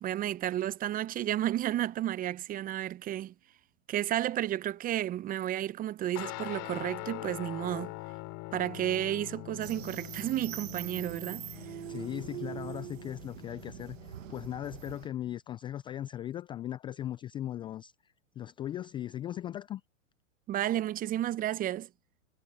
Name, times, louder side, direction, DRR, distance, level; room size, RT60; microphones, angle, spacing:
voice 1, 0.0-3.3 3.9-7.9 8.5-11.5 20.5-21.9, right 12 dB, 20° right, 0.8 m, -32 dB
Guitar, 6.2-14.9, left 25 dB, 40° left, 3.8 m, -44 dB
sound 1, 9.6-15.1, right 12 dB, 65° right, 1.5 m, -43 dB
voice 2, 11.9-19.8, left 11 dB, 15° left, 0.4 m, -38 dB
hypercardioid pair, 110°, 40 cm